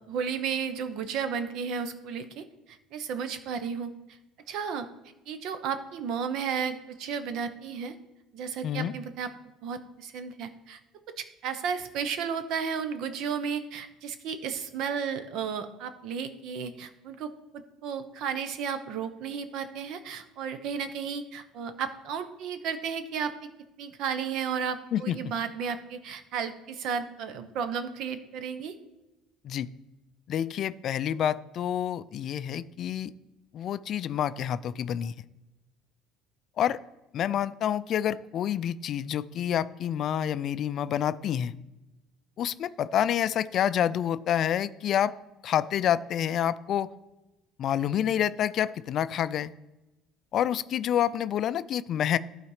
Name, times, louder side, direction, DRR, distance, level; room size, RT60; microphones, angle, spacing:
voice 1, 0.1-4.2 4.5-4.9 5.3-7.9 8.3-9.3 9.6-10.8 11.2-23.3 23.8-28.7, right 6 dB, 65° right, 10 dB, 0.8 m, -33 dB
voice 2, 30.3-33.1 33.5-35.1 36.6-36.8 37.1-41.6 42.4-45.1 45.4-46.9 47.6-49.5 50.3-52.2, left 10 dB, 50° left, 15 dB, 0.3 m, -28 dB
12.0 x 4.1 x 4.9 m, 1.0 s
supercardioid pair, 100°, 0 cm